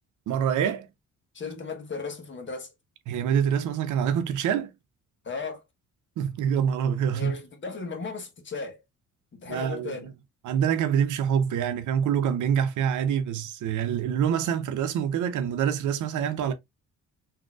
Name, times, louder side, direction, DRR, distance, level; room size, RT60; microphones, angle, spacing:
voice 1, 0.3-0.9 3.1-4.7 6.2-7.3 9.5-10.1 10.4-16.5, right 8 dB, 75° right, 0.7 m, -26 dB
voice 2, 1.3-2.7 5.2-5.6 7.1-8.8 9.3-10.1, left 4 dB, 40° left, 1.2 m, -36 dB
3.7 x 2.8 x 2.4 m
cardioid pair, 90°, 30 cm